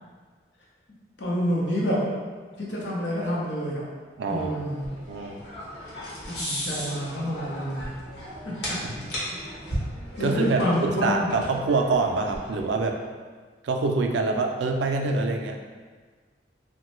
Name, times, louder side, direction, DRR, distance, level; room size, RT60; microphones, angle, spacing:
voice 1, 1.2-2.0 2.6-3.8 4.3-4.9 6.4-7.9 8.4-8.8 10.2-11.3, equal, 90° left, -5 dB, 0.8 m, -27 dB
voice 2, 4.2-4.6 5.1-5.4 8.8-8.9 10.2-10.6 11.0-13.0 13.6-15.6, right 3 dB, 85° right, 3 dB, 0.3 m, -25 dB
sound 1, 4.4-12.9, equal, 70° left, 1.0 m, -36 dB
3.0 x 2.1 x 3.0 m, 1.5 s
head